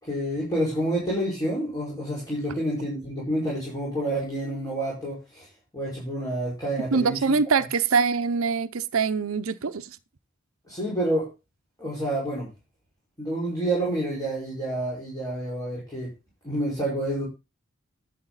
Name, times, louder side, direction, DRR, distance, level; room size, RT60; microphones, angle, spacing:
voice 1, 0.0-5.5 5.7-7.3 10.7-11.3 11.8-12.5 13.2-16.1 16.4-17.3, right 1 dB, 20° left, 5.0 m, -28 dB
voice 2, 6.9-10.0, right 5 dB, 80° right, 0.7 m, -24 dB
11.0 x 7.8 x 4.0 m
head